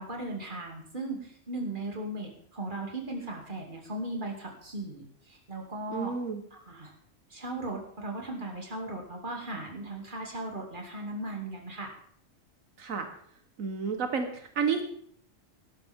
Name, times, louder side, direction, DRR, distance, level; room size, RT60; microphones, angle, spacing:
voice 1, 0.0-6.1 6.5-6.9 7.3-11.9, right 2 dB, 40° right, 0 dB, 2.7 m, -37 dB
voice 2, 5.9-6.4 12.8-13.1 13.6-14.8, right 5 dB, 85° right, 6 dB, 1.6 m, -30 dB
17.5 x 12.5 x 3.6 m, 0.63 s
omnidirectional pair, 1.4 m